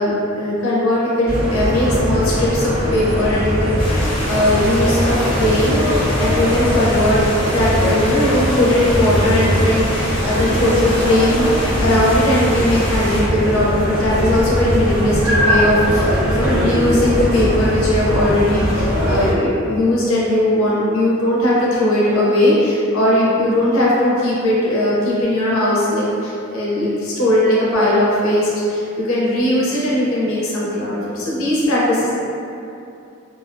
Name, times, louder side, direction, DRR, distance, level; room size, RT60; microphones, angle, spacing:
voice 1, 0.0-32.1, left 1 dB, 80° left, -6 dB, 0.6 m, -18 dB
sound 1, 1.3-19.3, equal, 70° right, 0.6 m, -20 dB
sound 2, 3.8-13.2, left 1 dB, 25° left, 0.5 m, -27 dB
2.5 x 2.0 x 2.5 m, 2.7 s
head